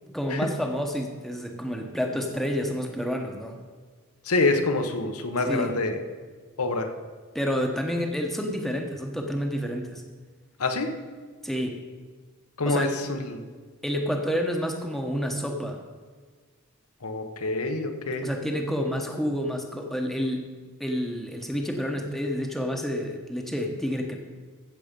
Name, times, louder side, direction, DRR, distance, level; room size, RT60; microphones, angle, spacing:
voice 1, 0.1-3.6 5.5-5.8 7.3-10.0 11.4-11.8 12.7-13.0 13.8-15.8 18.2-20.5 20.8-24.2, equal, ahead, 2 dB, 1.0 m, -29 dB
voice 2, 4.3-6.0 6.6-6.9 10.6-10.9 12.6-13.4 17.0-18.3, left 3 dB, 80° left, 6 dB, 1.1 m, -26 dB
15.5 x 7.0 x 5.3 m, 1.5 s
head